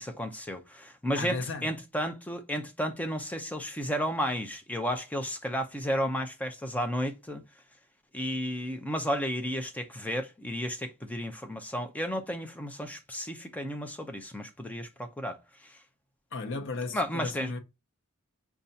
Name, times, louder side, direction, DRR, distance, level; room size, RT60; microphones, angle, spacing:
voice 1, 0.0-7.4 8.1-15.8 16.9-17.5, equal, 5° left, 0.4 m, -33 dB
voice 2, 1.2-1.7 16.3-17.6, left 3 dB, 55° left, 0.6 m, -34 dB
5.3 x 2.3 x 2.6 m
head